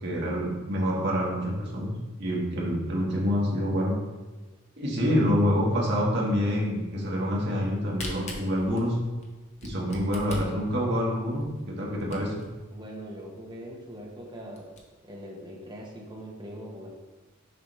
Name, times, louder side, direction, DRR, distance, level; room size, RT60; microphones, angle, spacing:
voice 1, 0.0-1.9 2.2-3.9 4.8-9.0 9.6-12.3, equal, 55° right, -4 dB, 1.5 m, -27 dB
Camera, 7.7-12.6 13.1-13.2 13.4-13.5 14.0-14.1 14.4-14.8, left 2 dB, 35° left, 0.9 m, -41 dB
voice 2, 12.7-14.7 15.0-16.9, equal, 20° right, -2 dB, 1.0 m, -42 dB
6.7 x 5.1 x 3.2 m, 1.2 s
head